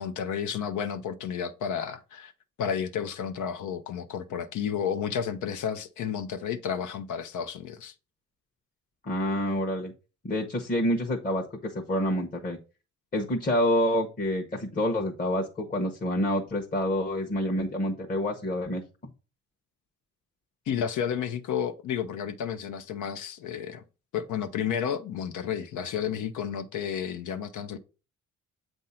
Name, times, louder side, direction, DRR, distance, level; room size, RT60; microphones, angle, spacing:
voice 1, 0.0-2.3 2.6-7.9 20.7-23.8 24.1-27.8, left 8 dB, 75° left, 0.7 m, -31 dB
voice 2, 9.0-9.9 10.2-12.6 13.1-18.8, left 1 dB, 30° left, 0.9 m, -27 dB
7.6 x 2.7 x 5.6 m
cardioid pair, 90°, 30 cm